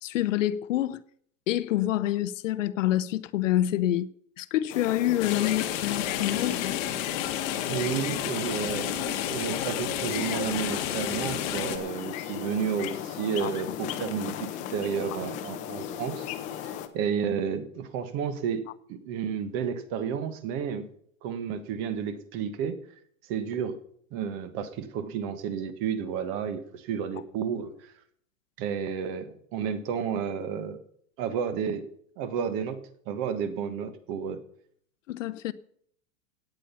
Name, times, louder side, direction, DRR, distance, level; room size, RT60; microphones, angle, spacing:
voice 1, 0.0-1.0 1.5-4.1 4.4-6.8 13.4-13.5 35.1-35.5, left 13 dB, 60° left, 0.8 m, -27 dB
sound 1, 4.7-16.9, left 10 dB, 15° left, 0.6 m, -37 dB
sound 2, 5.2-11.8, left 11 dB, 45° left, 1.7 m, -31 dB
voice 2, 7.7-16.3 16.6-18.6 18.9-20.8 21.2-22.8 23.3-23.8 24.1-27.9 28.6-30.8 31.2-31.8 32.2-34.4, right 7 dB, 30° right, 1.3 m, -31 dB
17.5 x 8.9 x 5.6 m
supercardioid pair, 170°, 43 cm